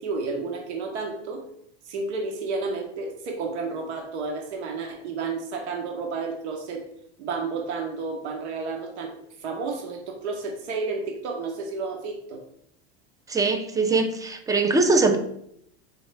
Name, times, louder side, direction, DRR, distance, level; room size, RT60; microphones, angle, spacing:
voice 1, 0.0-1.4 1.8-6.8 7.2-9.1 9.4-12.4, right 4 dB, 85° right, 2 dB, 0.9 m, -31 dB
voice 2, 13.3-15.2, right 3 dB, 10° right, 5 dB, 0.3 m, -22 dB
4.4 x 2.8 x 3.2 m, 0.74 s
supercardioid pair, 110°, 33 cm